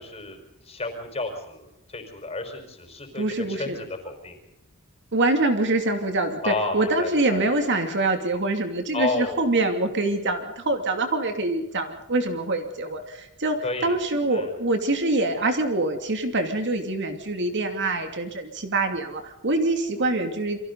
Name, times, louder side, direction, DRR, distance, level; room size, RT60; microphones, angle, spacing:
voice 1, 0.0-4.4 6.4-7.5 8.9-9.4 13.6-14.0 14.3-14.5, left 2 dB, 30° left, 5 dB, 5.1 m, -31 dB
voice 2, 3.2-3.8 5.1-20.6, right 2 dB, 55° right, 5 dB, 2.7 m, -25 dB
29.0 x 24.0 x 4.1 m, 0.84 s
head